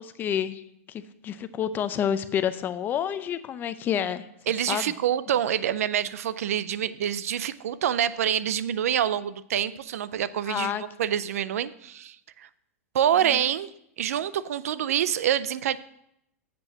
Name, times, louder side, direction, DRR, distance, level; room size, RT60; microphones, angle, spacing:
voice 1, 0.0-4.3 4.7-4.9 10.5-10.8 13.2-13.5, left 9 dB, 25° left, 12 dB, 0.5 m, -29 dB
voice 2, 4.5-12.5 12.9-13.7 14.0-15.8, right 10 dB, 85° right, 16 dB, 0.5 m, -26 dB
7.8 x 5.4 x 7.2 m, 0.77 s
supercardioid pair, 140°, 8 cm